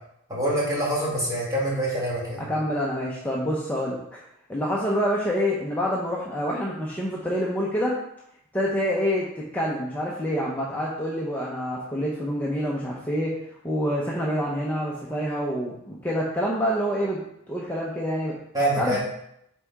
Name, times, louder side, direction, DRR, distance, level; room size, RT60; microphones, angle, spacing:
voice 1, 0.3-2.4 18.5-19.0, right 1 dB, 15° right, -6 dB, 2.2 m, -25 dB
voice 2, 2.5-4.2 4.5-8.0 8.5-13.4 13.6-17.2 17.5-18.4 18.8-19.0, equal, 10° left, -5 dB, 0.8 m, -27 dB
6.8 x 4.6 x 3.6 m, 0.76 s
head